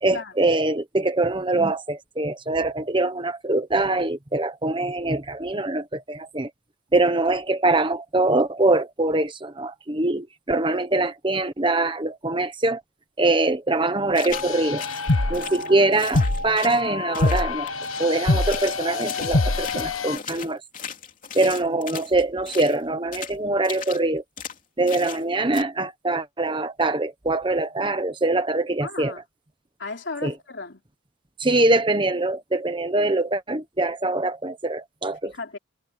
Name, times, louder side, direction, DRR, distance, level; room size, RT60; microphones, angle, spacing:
voice 1, 0.0-6.5 6.9-12.8 13.2-14.8 15.3-17.7 18.0-20.6 21.3-24.2 24.8-29.1 30.2-30.3 31.4-35.3, right 2 dB, 25° right, 1.1 m, -23 dB
sound 1, 14.1-14.5 14.8-16.8 17.1-18.1 18.4-22.8 23.1-23.4 23.6-24.0 24.4-24.6 24.9-25.2 25.5-25.6, left 7 dB, 40° left, 3.0 m, -37 dB
sound 2, 14.3-20.2, left 2 dB, 85° left, 1.3 m, -25 dB
voice 2, 28.8-29.2 29.8-30.8 35.2-35.6, left 3 dB, 60° left, 3.8 m, -35 dB
head